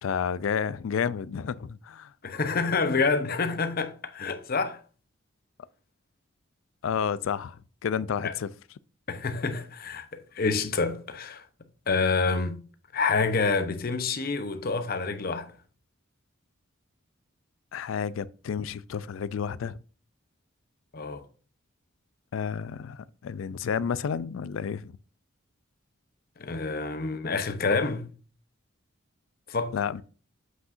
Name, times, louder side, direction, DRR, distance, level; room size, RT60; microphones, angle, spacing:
voice 1, 0.0-2.1 6.8-7.6 7.8-8.5 17.7-19.8 22.3-24.9 29.7-30.0, left 7 dB, 70° left, 0.3 m, -30 dB
voice 2, 2.2-4.8 8.2-8.3 9.1-11.4 11.9-12.6 12.9-15.5 20.9-21.2 26.4-28.1 29.5-29.7, left 4 dB, 45° left, 0.7 m, -27 dB
7.8 x 5.6 x 2.5 m
head